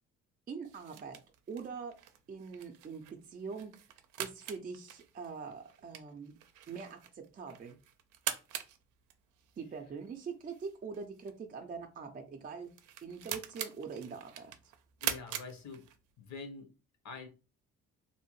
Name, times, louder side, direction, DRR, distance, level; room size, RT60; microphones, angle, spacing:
voice 1, 0.5-1.2 1.5-2.0 2.3-3.8 4.2-6.4 6.7-7.8 9.6-12.7 13.0-14.5, right 5 dB, 30° right, 3 dB, 0.4 m, -43 dB
sound 1, 0.6-16.3, right 10 dB, 85° right, 0.5 m, -44 dB
voice 2, 15.0-15.8 16.2-16.7 17.0-17.3, left 4 dB, 65° left, 5 dB, 0.9 m, -45 dB
2.7 x 2.1 x 3.0 m, 0.32 s
cardioid pair, 90°, 30 cm